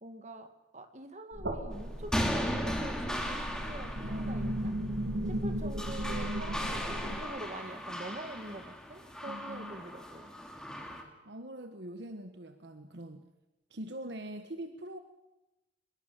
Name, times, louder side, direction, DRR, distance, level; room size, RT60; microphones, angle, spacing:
voice 1, 0.0-4.8 5.3-10.3, right 1 dB, 40° right, 7 dB, 2.0 m, -45 dB
sound 1, 1.3-7.2, equal, 75° right, 3.6 m, -36 dB
sound 2, 1.7-11.0, equal, 5° left, 2.8 m, -37 dB
voice 2, 9.3-9.7 11.2-13.3 13.7-15.0, right 1 dB, 60° right, 8 dB, 1.4 m, -43 dB
24.0 x 22.0 x 7.5 m, 1.0 s
head